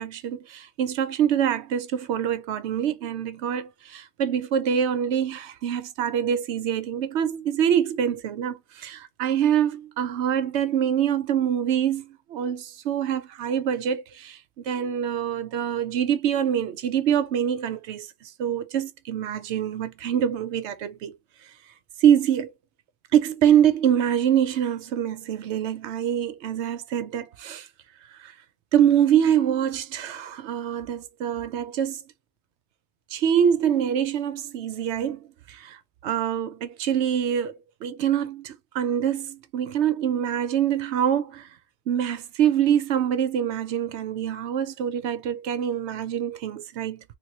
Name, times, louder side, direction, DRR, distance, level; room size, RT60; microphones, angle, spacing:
voice 1, 0.0-14.4 14.6-21.1 22.0-22.5 23.1-27.7 28.1-28.3 28.7-32.0 33.1-41.5 41.9-47.0, right 9 dB, 75° right, 0.9 m, -25 dB
3.4 x 2.6 x 2.8 m
omnidirectional pair, 1.2 m